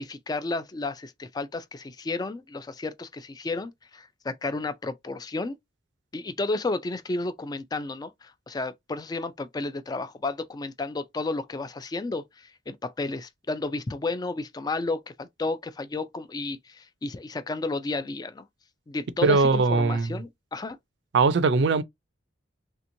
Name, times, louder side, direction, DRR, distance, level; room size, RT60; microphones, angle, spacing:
voice 1, 0.0-5.6 6.1-18.5 18.9-20.8, left 3 dB, 20° left, 0.3 m, -32 dB
voice 2, 19.2-20.1 21.1-21.8, right 4 dB, 65° right, 0.4 m, -20 dB
3.4 x 2.9 x 2.6 m
head